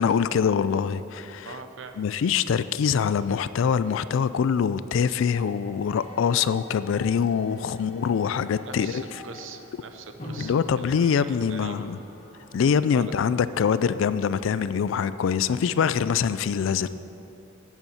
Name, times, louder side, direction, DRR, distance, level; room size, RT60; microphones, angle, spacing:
voice 1, 0.0-1.5 2.0-9.0 10.4-12.0 12.5-16.9, left 7 dB, 70° left, 15 dB, 0.3 m, -24 dB
voice 2, 1.4-2.0 8.6-11.9 12.9-13.2, right 4 dB, 70° right, 6 dB, 0.8 m, -42 dB
sound 1, 5.3-13.6, left 1 dB, 35° left, 1.6 m, -45 dB
8.1 x 7.1 x 8.1 m, 3.0 s
head